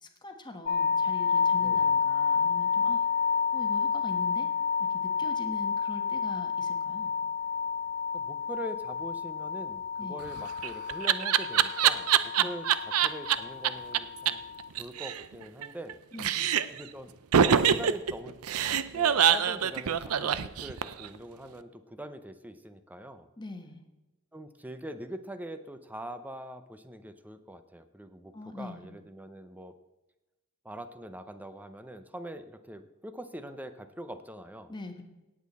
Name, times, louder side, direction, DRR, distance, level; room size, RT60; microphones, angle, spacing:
voice 1, 0.0-3.0 3.5-4.5 4.9-7.1 10.0-10.2 12.4-12.5 16.1-16.5 23.4-23.8 28.3-28.8 34.7-35.1, left 2 dB, 20° left, 5 dB, 1.3 m, -42 dB
sound 1, 0.7-14.7, left 6 dB, 45° left, 0.5 m, -30 dB
voice 2, 1.6-2.0 8.1-14.4 14.8-16.0 16.7-18.4 18.8-23.3 24.3-29.8 30.6-34.7, right 1 dB, 10° right, 10 dB, 0.6 m, -43 dB
Laughter, 10.2-13.3 13.6-13.7 13.9-14.0 14.3-14.4 14.6-15.9 16.2-16.8 17.3-21.1, right 8 dB, 80° right, 0.5 m, -24 dB
17.5 x 8.5 x 4.2 m, 1.0 s
head